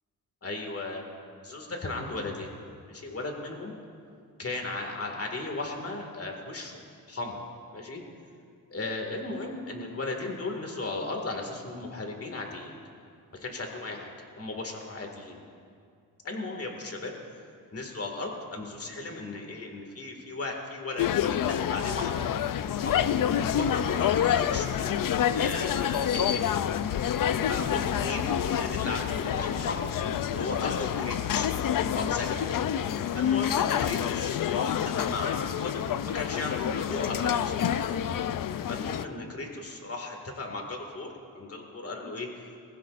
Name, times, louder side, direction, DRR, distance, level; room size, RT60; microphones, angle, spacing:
voice 1, 0.4-1.0 1.4-2.5 2.9-3.7 4.4-6.8 7.1-7.4 7.7-8.0 8.7-12.7 13.3-15.4 16.2-17.1 17.7-22.3 22.8-23.1 23.5-26.4 27.5-30.0 30.2-31.5 31.9-32.5 33.1-38.0 38.7-42.3, left 2 dB, 35° left, 2 dB, 2.1 m, -36 dB
sound 1, 21.0-39.0, left 9 dB, 60° left, 0.5 m, -28 dB
21.0 x 15.5 x 2.5 m, 2.3 s
cardioid pair, 85°, 39 cm